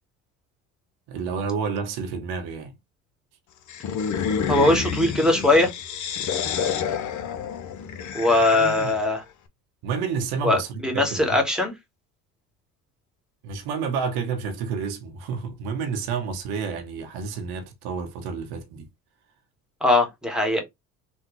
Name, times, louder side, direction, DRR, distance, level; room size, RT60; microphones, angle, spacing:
voice 1, 1.1-2.7 8.5-9.0 9.8-11.4 13.4-18.9, right 5 dB, 65° right, 0.9 m, -30 dB
sound 1, 3.7-9.2, left 7 dB, 45° left, 0.7 m, -29 dB
voice 2, 4.5-5.7 8.1-9.2 10.4-11.7 19.8-20.6, left 2 dB, ahead, 1.4 m, -20 dB
3.4 x 2.2 x 3.0 m
hypercardioid pair, 65°, 41 cm